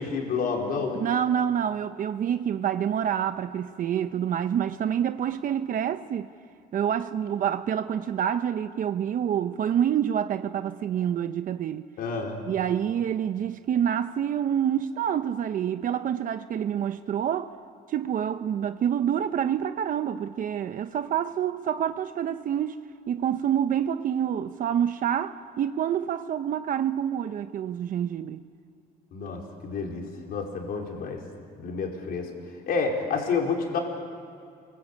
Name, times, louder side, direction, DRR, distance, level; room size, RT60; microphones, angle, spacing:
voice 1, 0.0-1.0 12.0-12.4 29.1-31.2 31.6-32.3 32.7-33.8, left 5 dB, 65° left, 4.7 m, -29 dB
voice 2, 1.0-6.3 6.7-11.9 12.5-17.5 17.9-22.8 23.1-28.4, right 9 dB, 55° right, 0.9 m, -27 dB
29.5 x 24.0 x 8.5 m
cardioid pair, 110°, 17 cm